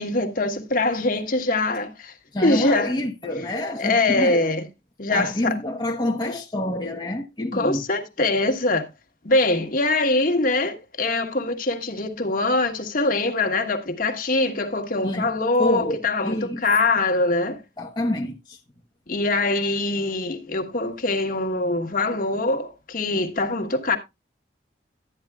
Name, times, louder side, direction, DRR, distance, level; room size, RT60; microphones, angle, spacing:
voice 1, 0.0-2.1 2.4-2.9 3.8-4.7 5.0-5.6 7.5-8.9 9.2-17.6 19.1-24.0, left 2 dB, 50° left, 1.4 m, -23 dB
voice 2, 2.3-4.5 5.1-7.8 15.0-15.3 15.6-16.6 17.8-18.6, left 1 dB, 25° left, 0.9 m, -27 dB
12.0 x 9.6 x 2.3 m
head